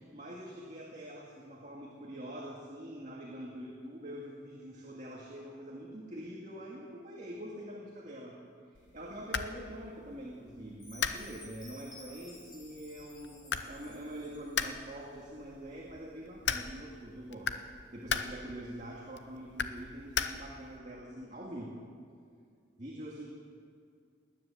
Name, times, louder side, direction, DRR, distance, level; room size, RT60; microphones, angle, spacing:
voice 1, 0.1-8.3 8.7-17.5 17.9-21.7 22.8-23.3, right 1 dB, 40° right, -3 dB, 2.0 m, -45 dB
sound 1, 8.7-20.8, left 6 dB, 65° left, 0.8 m, -39 dB
Chime, 10.8-14.9, left 1 dB, 20° left, 3.5 m, -55 dB
19.5 x 10.0 x 7.2 m, 2.2 s
head